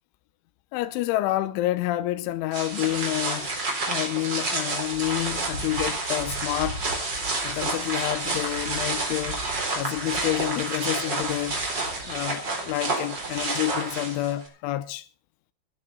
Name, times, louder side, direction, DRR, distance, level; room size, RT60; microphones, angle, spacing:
voice 1, 0.7-3.5 3.9-6.8 7.3-9.4 9.8-11.6 12.0-15.1, left 16 dB, 85° left, 3.3 m, -28 dB
sound 1, 2.5-14.5, right 2 dB, 25° right, 4.0 m, -29 dB
15.5 x 9.9 x 6.6 m
omnidirectional pair, 5.5 m